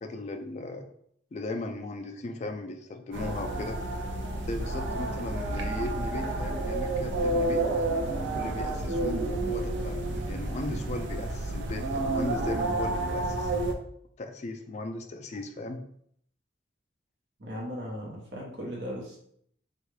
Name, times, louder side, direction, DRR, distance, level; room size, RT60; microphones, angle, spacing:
voice 1, 0.0-0.9 1.3-3.8 4.4-7.7 8.3-13.5 14.2-15.8, left 2 dB, 35° left, 5 dB, 0.3 m, -37 dB
sound 1, 3.1-13.7, right 2 dB, 85° right, 0.5 m, -30 dB
voice 2, 17.4-19.2, equal, 65° right, -2 dB, 0.9 m, -37 dB
3.5 x 2.3 x 3.2 m, 0.67 s
head